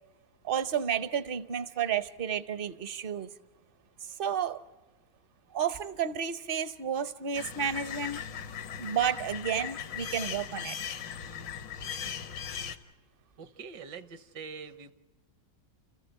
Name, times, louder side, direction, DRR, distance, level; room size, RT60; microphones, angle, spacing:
voice 1, 0.4-3.3 4.0-4.6 5.5-8.2 8.8-10.8, right 8 dB, 50° right, 0.7 m, -31 dB
sound 1, 7.3-12.8, left 8 dB, 85° left, 1.9 m, -38 dB
voice 2, 13.4-14.9, right 5 dB, 75° right, 1.7 m, -44 dB
30.0 x 14.5 x 8.1 m
omnidirectional pair, 1.9 m